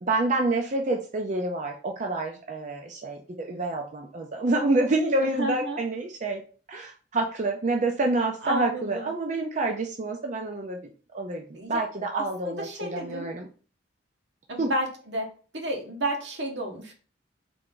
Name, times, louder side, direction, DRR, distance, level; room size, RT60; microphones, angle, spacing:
voice 1, 0.0-6.4 6.7-10.8 11.1-13.5 14.6-14.7, right 2 dB, 40° right, 2 dB, 0.5 m, -28 dB
voice 2, 5.2-5.8 8.4-9.1 11.5-11.8 12.1-13.3 14.5-15.3 15.5-16.9, right 1 dB, 80° right, 1 dB, 1.4 m, -31 dB
3.7 x 3.4 x 3.7 m, 0.38 s
head